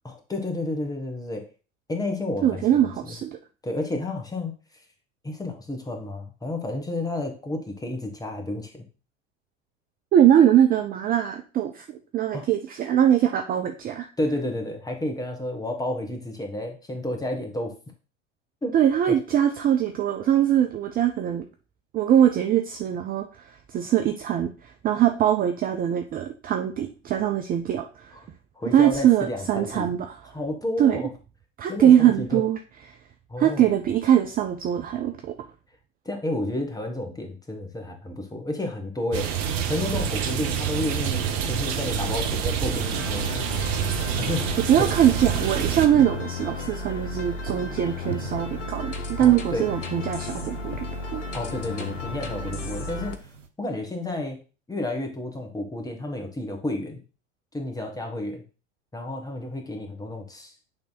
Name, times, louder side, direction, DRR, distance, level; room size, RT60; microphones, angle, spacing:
voice 1, 0.0-1.4 1.9-3.1 3.6-4.5 5.2-8.8 12.3-12.5 14.2-17.7 18.6-18.8 19.1-19.2 28.5-29.9 30.3-31.1 31.7-32.4 33.3-33.7 36.0-43.4 44.2-44.9 49.2-49.7 51.3-53.3 53.6-54.4 54.7-57.0 57.5-58.4 58.9-60.5, left 1 dB, 10° left, 4 dB, 1.5 m, -31 dB
voice 2, 2.4-3.4 10.1-14.1 18.7-21.4 21.9-28.1 28.7-30.2 30.8-31.0 31.6-32.6 33.4-35.3 44.7-50.9 51.1-51.2, right 10 dB, 25° right, 5 dB, 0.5 m, -22 dB
sound 1, 39.1-45.9, right 8 dB, 50° right, 1.0 m, -27 dB
sound 2, 42.9-53.2, left 3 dB, 75° left, 0.9 m, -34 dB
sound 3, 43.8-53.5, right 7 dB, 85° right, 0.8 m, -42 dB
8.7 x 3.4 x 4.1 m, 0.35 s
figure-of-eight pair, 80°, 37 cm